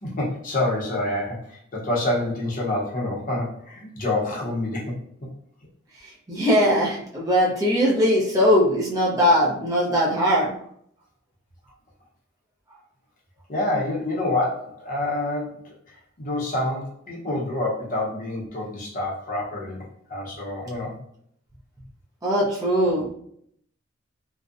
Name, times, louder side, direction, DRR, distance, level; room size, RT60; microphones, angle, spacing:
voice 1, 0.0-5.3 13.5-15.7 16.2-19.8 20.1-21.0, left 2 dB, 45° left, -4 dB, 0.7 m, -27 dB
voice 2, 6.0-10.5 22.2-23.1, equal, 20° right, -5 dB, 0.5 m, -20 dB
2.6 x 2.1 x 2.4 m, 0.68 s
head